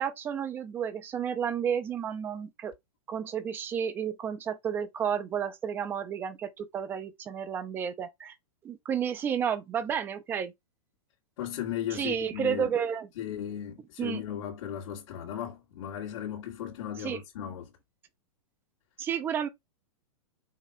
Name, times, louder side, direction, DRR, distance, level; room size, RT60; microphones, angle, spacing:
voice 1, 0.0-2.7 3.1-8.3 8.6-10.5 11.9-13.1 14.0-14.2 17.0-17.2 19.0-19.5, right 8 dB, 10° right, 0.6 m, -31 dB
voice 2, 11.4-12.7 13.1-17.7, left 10 dB, 50° left, 2.5 m, -36 dB
6.5 x 2.9 x 4.9 m
supercardioid pair, 170°, 18 cm